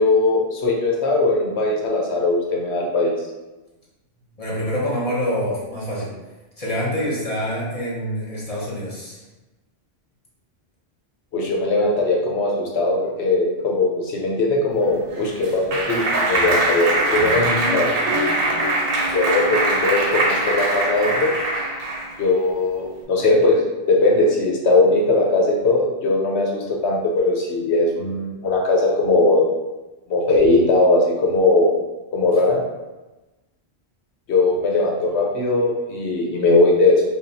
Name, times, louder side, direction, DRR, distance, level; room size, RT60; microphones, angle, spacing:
voice 1, 0.0-3.1 11.3-17.9 19.0-21.3 22.2-29.4 30.1-31.7 32.1-32.6 34.3-37.0, left 2 dB, 85° left, -1 dB, 1.1 m, -19 dB
voice 2, 4.4-6.1 6.6-9.2, equal, 35° left, -7 dB, 1.1 m, -26 dB
Clapping, 14.9-22.1, right 2 dB, 65° right, 0.8 m, -22 dB
5.1 x 2.4 x 2.7 m, 1.1 s
omnidirectional pair, 1.1 m